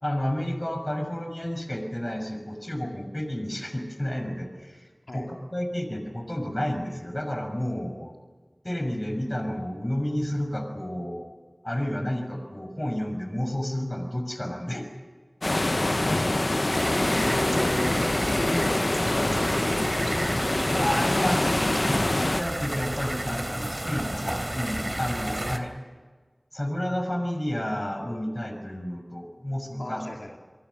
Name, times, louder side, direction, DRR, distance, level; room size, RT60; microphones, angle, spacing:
voice 1, 0.0-4.8 5.1-5.2 5.5-8.1 8.6-11.2 11.6-14.9 20.8-25.7 26.5-30.0, left 1 dB, 30° left, 5 dB, 6.0 m, -31 dB
sound 1, 15.4-22.4, left 1 dB, 55° left, 0.7 m, -25 dB
voice 2, 15.8-16.9 17.3-20.2 25.3-25.5 29.8-30.4, left 1 dB, 80° left, 1 dB, 2.8 m, -37 dB
sound 2, 16.7-25.6, right 1 dB, 40° right, 3.1 m, -32 dB
27.5 x 23.5 x 6.5 m, 1.4 s
wide cardioid pair, 40°, 0 cm